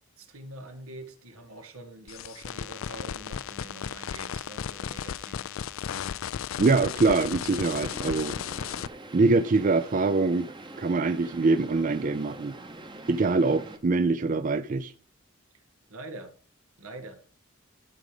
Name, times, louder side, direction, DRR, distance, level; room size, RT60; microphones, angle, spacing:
voice 1, 0.2-5.5 13.1-13.4 15.9-16.3 16.8-17.2, right 2 dB, 90° right, 1.7 m, -45 dB
sound 1, 2.1-8.9, left 8 dB, 70° left, 0.4 m, -35 dB
voice 2, 6.6-8.3 9.1-10.5 10.8-12.5 13.1-14.9, right 3 dB, 40° right, 0.4 m, -24 dB
sound 2, 7.5-13.8, right 2 dB, 20° right, 0.9 m, -44 dB
12.0 x 5.1 x 5.0 m
head